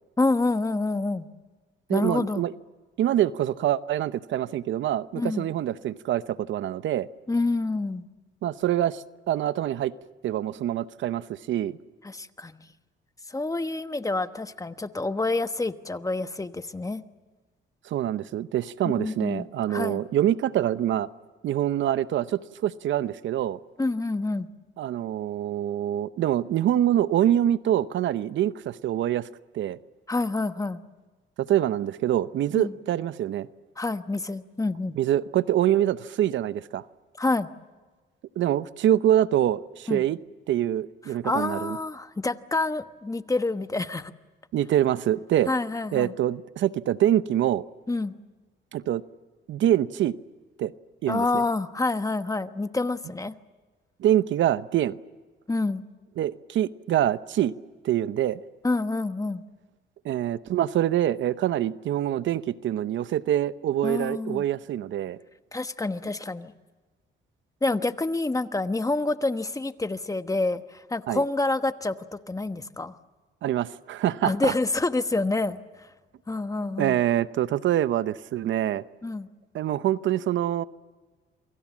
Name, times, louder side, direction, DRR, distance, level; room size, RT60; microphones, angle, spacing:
voice 1, 0.2-1.3 1.9-2.4 5.1-5.5 7.3-8.1 12.0-12.7 13.3-17.0 19.0-20.0 23.8-24.5 30.1-30.8 32.5-32.7 33.8-34.9 37.2-37.5 39.9-40.0 41.2-44.1 45.5-46.1 47.9-48.1 51.1-53.3 55.5-55.8 58.6-59.4 63.8-64.4 65.5-66.5 67.6-73.0 74.2-75.9 76.3-77.0 79.0-79.3, left 2 dB, 15° left, 10 dB, 1.2 m, -27 dB
voice 2, 1.9-2.5 3.0-7.1 8.4-9.9 10.2-11.8 17.8-21.1 21.4-23.6 24.8-29.3 29.5-29.8 31.4-33.5 35.0-36.8 38.4-40.2 40.5-41.8 44.5-45.5 45.9-47.6 48.7-49.0 49.5-50.1 50.6-50.7 51.0-51.4 54.0-54.9 56.2-57.5 57.8-58.4 60.0-65.2 71.1-71.2 73.4-74.5 76.8-78.8 79.5-80.6, right 11 dB, 70° right, 15 dB, 0.8 m, -25 dB
28.0 x 24.0 x 7.4 m, 1.3 s
cardioid pair, 90°, 20 cm